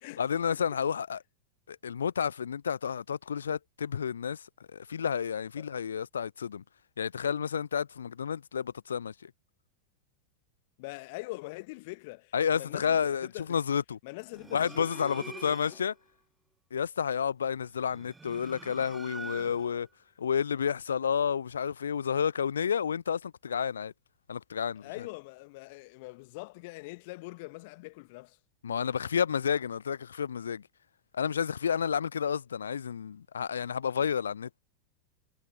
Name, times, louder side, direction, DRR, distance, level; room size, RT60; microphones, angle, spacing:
voice 1, 0.2-1.2 1.7-6.6 7.0-9.3 12.3-14.0 14.5-15.9 16.7-19.9 20.2-23.9 24.3-24.9 28.6-30.6 31.1-34.5, left 7 dB, 70° left, 0.4 m, -30 dB
voice 2, 10.8-13.6 14.0-15.8 24.8-28.4, left 25 dB, 50° left, 1.2 m, -43 dB
sound 1, 14.3-15.9 17.8-19.8, right 4 dB, 10° right, 1.0 m, -45 dB
figure-of-eight pair, 90°, 0 cm